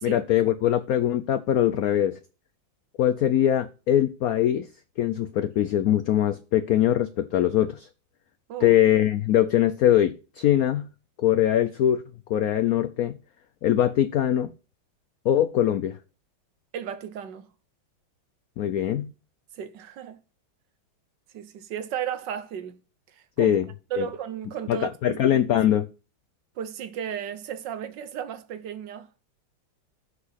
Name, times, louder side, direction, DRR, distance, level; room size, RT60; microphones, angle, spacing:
voice 1, 0.0-2.2 3.0-4.7 5.0-7.9 8.6-10.9 11.2-12.0 12.3-13.2 13.6-14.5 15.2-16.0 18.6-19.1 23.4-23.7 24.0-24.1 24.7-25.9, left 11 dB, 90° left, 0.7 m, -22 dB
voice 2, 16.7-17.5 19.5-20.2 21.3-22.8 23.1-23.6 23.9-25.2 26.6-29.1, right 9 dB, 65° right, 1.4 m, -34 dB
7.8 x 6.1 x 5.7 m
omnidirectional pair, 2.2 m